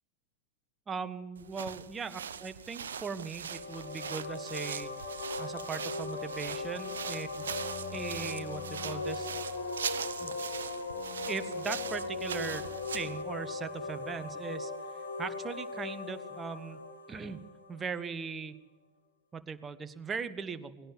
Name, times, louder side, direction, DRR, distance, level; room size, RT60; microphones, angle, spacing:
voice 1, 0.9-4.9 5.4-7.6 7.9-9.3 10.2-10.3 11.3-12.6 12.9-16.8 17.1-17.4 17.7-18.6 19.3-20.9, right 5 dB, 20° right, 10 dB, 1.3 m, -39 dB
sound 1, 1.4-13.2, right 7 dB, 65° right, 0.9 m, -41 dB
sound 2, 3.3-18.0, left 3 dB, 70° left, 2.9 m, -39 dB
Bowed string instrument, 7.3-14.4, left 6 dB, 50° left, 1.1 m, -51 dB
20.0 x 17.0 x 7.4 m, 1.1 s
figure-of-eight pair, 90°, 0 cm